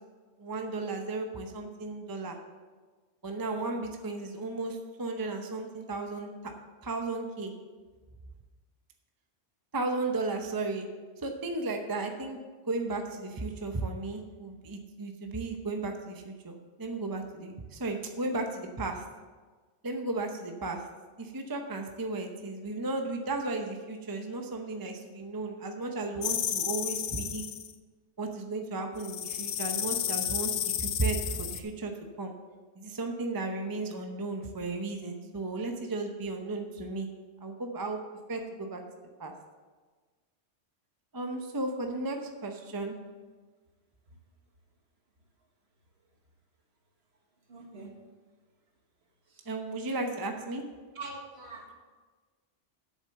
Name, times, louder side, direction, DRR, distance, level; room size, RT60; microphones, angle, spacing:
voice 1, 0.4-2.4 3.2-6.5 6.8-7.5 9.7-10.9 11.2-12.4 12.7-19.0 19.8-20.8 21.2-27.4 28.2-31.9 32.2-32.3 32.8-37.1 37.4-38.0 38.3-38.8 39.2-39.3 41.1-43.0 49.5-50.6, right 2 dB, 20° right, 4 dB, 0.7 m, -34 dB
sound 1, 26.2-27.7 29.0-31.6, left 9 dB, 75° left, 1.0 m, -32 dB
voice 2, 47.5-47.9 51.0-51.7, right 3 dB, 60° right, 1 dB, 1.8 m, -43 dB
8.4 x 6.9 x 6.8 m, 1.4 s
omnidirectional pair, 1.3 m